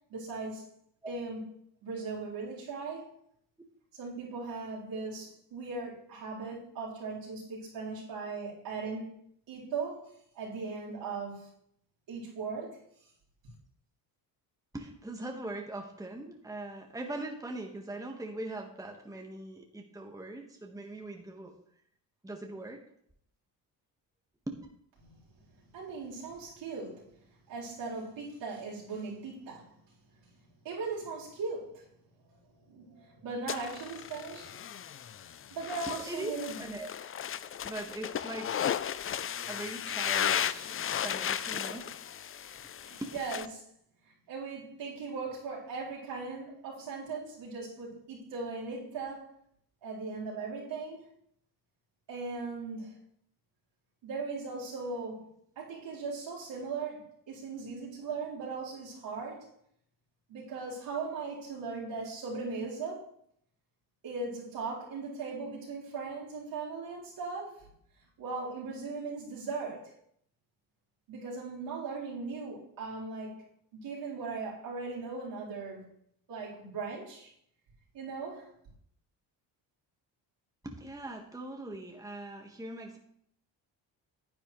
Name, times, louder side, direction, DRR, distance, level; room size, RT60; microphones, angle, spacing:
voice 1, 0.1-0.7 1.1-1.4 1.8-3.1 3.9-9.1 9.5-11.5 12.1-12.8 25.7-27.1 27.5-29.7 30.6-31.8 32.7-34.9 35.5-36.5 42.8-43.4 44.3-49.3 49.8-51.0 52.1-52.9 54.0-55.2 55.6-59.5 60.3-63.1 64.0-67.7 68.2-69.9 71.1-73.4 73.7-75.9 76.3-77.3 77.9-78.5, right 4 dB, 75° right, 4.2 m, -38 dB
voice 2, 14.7-21.6 22.2-22.8 24.5-24.6 35.9-36.9 37.6-38.6 39.5-41.9 43.0-43.1 80.6-83.0, right 2 dB, 10° right, 1.4 m, -41 dB
sound 1, 33.5-43.5, left 9 dB, 30° left, 0.4 m, -35 dB
10.0 x 8.6 x 3.2 m
supercardioid pair, 70°, 44 cm